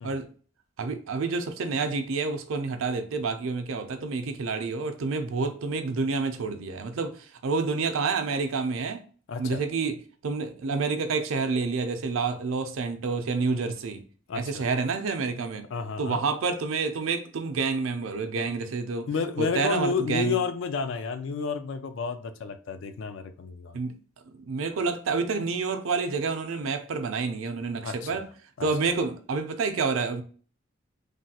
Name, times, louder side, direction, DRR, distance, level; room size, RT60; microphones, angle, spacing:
voice 1, 0.8-9.0 9.4-14.0 14.3-15.7 16.0-19.1 19.4-20.4 23.7-24.0 24.3-28.3 28.6-30.2, right 4 dB, 80° right, 0.5 m, -28 dB
voice 2, 9.3-9.6 14.3-14.7 15.7-16.2 19.1-23.7 27.8-28.2 28.6-28.7, left 5 dB, 65° left, 0.4 m, -31 dB
3.2 x 2.2 x 2.7 m
head